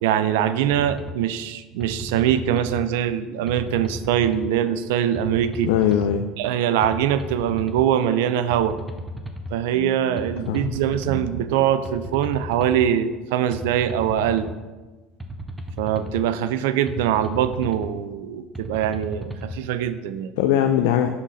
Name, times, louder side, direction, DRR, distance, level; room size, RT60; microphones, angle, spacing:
voice 1, 0.0-5.7 6.4-8.8 9.5-14.5 15.8-20.3, right 10 dB, 85° right, 13 dB, 0.3 m, -23 dB
sound 1, 0.7-1.2 1.8-2.8 3.5-4.5 5.2-6.2 6.8-7.9 8.5-9.5 10.2-11.2 11.9-12.9 13.5-14.6 15.2-16.2 16.9-17.9 18.5-19.6, equal, 10° right, 0.7 m, -34 dB
voice 2, 5.6-6.3 9.7-10.2 10.5-10.7 20.4-21.1, left 10 dB, 80° left, 6 dB, 0.3 m, -21 dB
6.1 x 3.9 x 4.0 m, 1.3 s
supercardioid pair, 95°, 0 cm